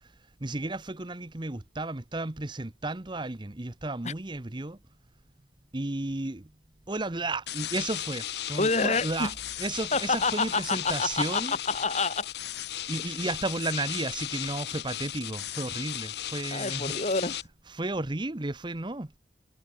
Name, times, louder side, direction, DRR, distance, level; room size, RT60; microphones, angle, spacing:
voice 1, 0.4-4.8 5.7-6.5 6.9-9.3 9.6-11.6 12.9-16.9 17.7-19.2, right 2 dB, 25° right, 0.9 m, -33 dB
sound 1, 7.5-17.4, left 12 dB, 65° left, 1.0 m, -36 dB
voice 2, 8.5-9.3 9.9-12.3 16.5-17.4, left 3 dB, 40° left, 2.9 m, -28 dB
head